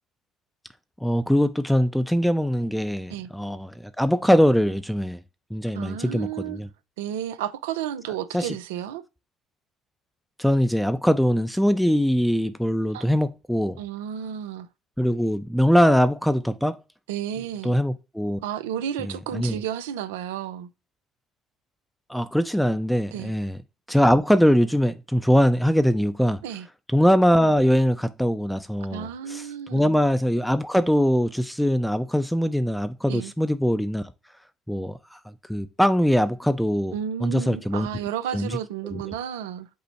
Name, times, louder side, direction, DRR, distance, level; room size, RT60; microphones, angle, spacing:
voice 1, 1.0-5.2 5.5-6.7 8.3-8.5 10.4-13.8 15.0-16.8 17.6-18.4 19.0-19.6 22.1-23.6 23.9-26.4 26.9-34.1 34.7-35.2 35.5-36.9 37.2-37.9 38.3-38.6 38.9-39.0, equal, ahead, 0.5 m, -22 dB
voice 2, 5.7-6.6 7.0-9.0 12.9-13.0 13.8-14.7 17.1-17.8 18.4-20.7 23.1-23.3 26.4-26.7 28.9-29.8 33.1-33.3 36.9-39.7, right 10 dB, 85° right, 0.4 m, -32 dB
5.4 x 2.0 x 4.4 m
hypercardioid pair, 60°, 0 cm